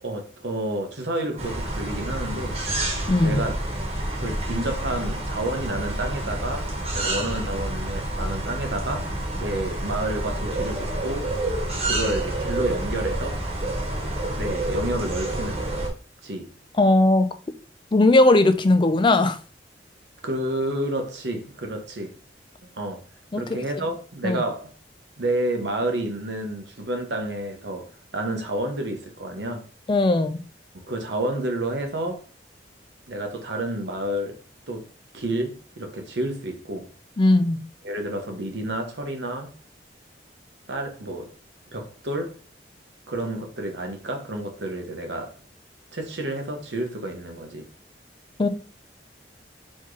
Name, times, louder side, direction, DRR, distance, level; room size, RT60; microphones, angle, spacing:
voice 1, 0.0-2.6 3.2-3.5 4.1-9.1 9.4-11.3 11.8-13.5 14.4-15.9 16.2-16.5 20.2-22.1 22.8-23.0 23.4-24.7 25.2-29.7 30.7-32.3 33.1-34.4 34.7-34.9 35.1-36.9 37.8-39.5 40.7-41.3 41.7-42.3 43.1-45.3 45.9-47.7, right 1 dB, 80° right, 1.1 m, -30 dB
sound 1, 1.4-15.9, right 1 dB, 35° right, 1.3 m, -28 dB
voice 2, 3.1-3.4 16.8-17.3 17.9-19.4 23.3-23.6 24.2-24.4 29.9-30.4 37.2-37.6 48.4-48.5, left 2 dB, 30° left, 0.4 m, -18 dB
4.2 x 3.7 x 3.2 m
head